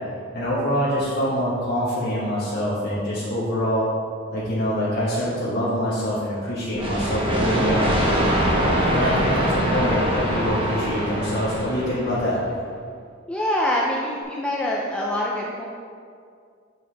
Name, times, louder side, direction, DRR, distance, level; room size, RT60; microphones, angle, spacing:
voice 1, 0.3-3.9 4.3-7.9 8.5-8.6 8.9-12.4, equal, 50° left, -12 dB, 1.6 m, -25 dB
sound 1, 6.7-12.5, equal, 25° right, 1.1 m, -23 dB
voice 2, 13.3-15.6, left 1 dB, 5° left, -4 dB, 0.5 m, -25 dB
7.7 x 5.5 x 3.5 m, 2.2 s
head